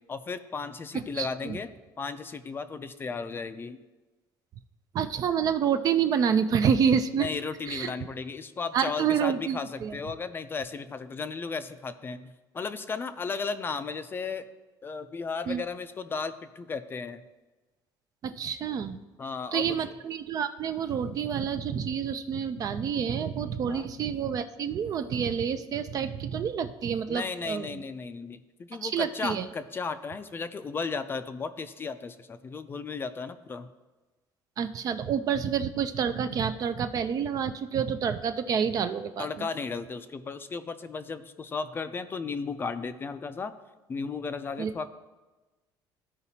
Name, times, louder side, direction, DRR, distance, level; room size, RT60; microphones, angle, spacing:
voice 1, 0.1-1.7 2.0-3.8 7.2-14.4 14.8-17.2 19.2-19.9 23.7-23.9 27.1-33.7 39.2-43.5 43.9-44.9, left 4 dB, 25° left, 10 dB, 0.4 m, -35 dB
voice 2, 1.1-1.6 4.9-7.3 7.7-7.9 8.7-10.0 15.5-15.6 18.2-19.0 19.5-27.8 28.8-29.5 34.6-39.5 44.6-44.7, right 7 dB, 45° right, 10 dB, 0.5 m, -28 dB
14.0 x 5.0 x 2.8 m, 1.2 s
cardioid pair, 125°, 9 cm